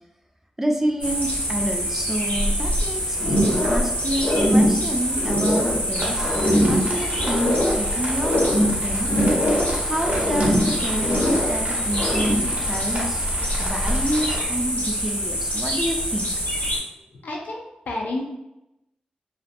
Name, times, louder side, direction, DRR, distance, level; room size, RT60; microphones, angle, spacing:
voice 1, 0.6-9.1 9.8-13.3 13.6-16.3, right 1 dB, 10° right, 2 dB, 0.3 m, -28 dB
sound 1, 1.0-16.8, equal, 65° left, 1.0 m, -26 dB
sound 2, 3.2-5.8 6.2-7.8 8.2-9.8 10.0-11.6 11.9-12.5, equal, 40° left, 0.6 m, -22 dB
sound 3, 5.9-14.4, right 1 dB, 55° right, 0.6 m, -33 dB
voice 2, 17.2-18.2, left 2 dB, 85° left, -1 dB, 0.4 m, -30 dB
2.4 x 2.2 x 2.5 m, 0.91 s
wide cardioid pair, 120°, 3 cm